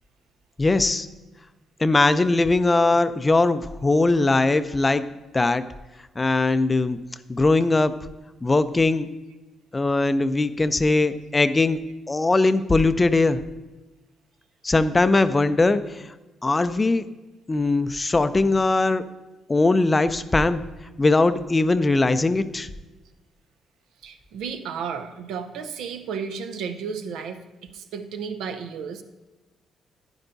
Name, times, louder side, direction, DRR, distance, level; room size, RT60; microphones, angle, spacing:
voice 1, 0.6-1.1 1.8-5.7 6.2-7.0 7.3-8.0 8.4-9.1 9.7-13.4 14.6-16.1 16.4-17.0 17.5-19.1 19.5-20.6 21.0-22.7, left 2 dB, 20° left, 13 dB, 0.4 m, -20 dB
voice 2, 24.0-29.0, right 6 dB, 85° right, 8 dB, 0.7 m, -33 dB
10.5 x 9.8 x 2.6 m, 1.1 s
cardioid pair, 90°, 0 cm